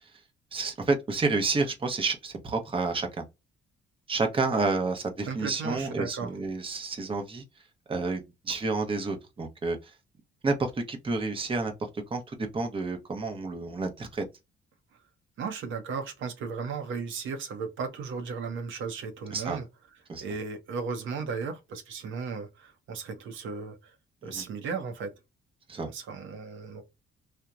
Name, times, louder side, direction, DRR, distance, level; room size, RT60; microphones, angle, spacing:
voice 1, 0.5-3.1 4.1-7.4 7.9-9.8 10.4-14.2 19.3-19.6 20.1-20.2 24.3-24.4 25.7-25.9, right 3 dB, 25° right, 0.7 m, -30 dB
voice 2, 5.3-6.4 15.4-19.7 20.2-23.9 24.2-25.2 25.9-26.8, right 5 dB, 75° right, 0.7 m, -35 dB
2.9 x 2.1 x 2.3 m
cardioid pair, 90°, 20 cm